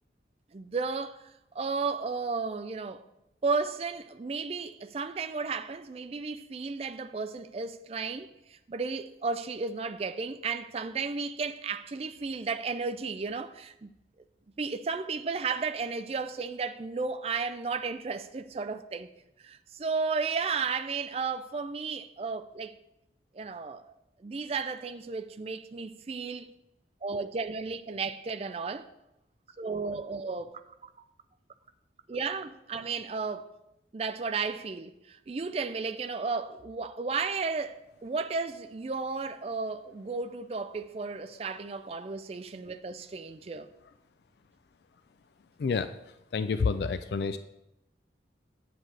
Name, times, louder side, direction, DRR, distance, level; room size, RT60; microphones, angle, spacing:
voice 1, 0.5-1.3 1.5-3.0 3.4-13.9 14.6-19.1 19.4-22.7 23.3-23.9 24.2-26.5 27.0-28.9 29.6-30.9 32.1-33.5 33.9-43.7, right 4 dB, 35° right, 0.4 m, -33 dB
voice 2, 46.3-47.4, left 5 dB, 65° left, 0.3 m, -28 dB
9.0 x 7.5 x 3.3 m
head